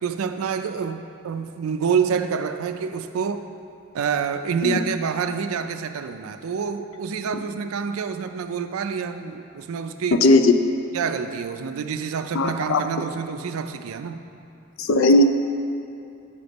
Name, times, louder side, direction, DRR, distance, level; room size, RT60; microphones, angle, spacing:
voice 1, 0.0-3.4 3.9-10.2 10.9-14.2, right 6 dB, 85° right, 9 dB, 0.4 m, -27 dB
voice 2, 10.2-10.5 12.3-12.8 14.8-15.2, left 2 dB, 65° left, 8 dB, 0.4 m, -17 dB
9.1 x 5.1 x 4.0 m, 2.8 s
head